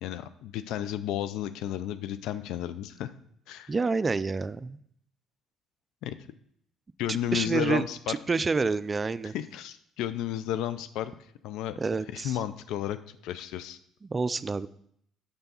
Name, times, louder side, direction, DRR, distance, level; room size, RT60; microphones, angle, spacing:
voice 1, 0.0-3.1 3.5-3.7 6.0-6.1 7.0-8.1 9.3-11.1 11.4-11.7 12.1-13.0 13.2-13.8, left 11 dB, 75° left, 12 dB, 0.3 m, -32 dB
voice 2, 3.7-4.8 7.1-9.3 11.8-12.4 14.0-14.7, right 4 dB, 30° right, 15 dB, 0.3 m, -28 dB
6.8 x 3.4 x 5.5 m, 0.68 s
supercardioid pair, 70°, 0 cm